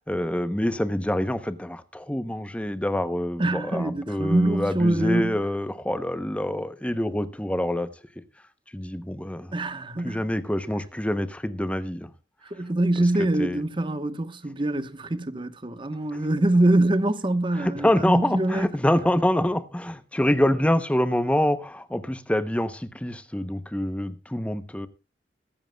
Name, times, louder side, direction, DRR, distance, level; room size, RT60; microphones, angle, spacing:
voice 1, 0.1-7.9 8.7-9.5 10.0-12.1 13.4-13.6 17.6-24.9, left 1 dB, 5° left, 0.7 m, -26 dB
voice 2, 3.4-5.4 9.5-10.2 12.4-18.7, right 1 dB, 30° right, 1.0 m, -24 dB
22.0 x 10.5 x 2.2 m
head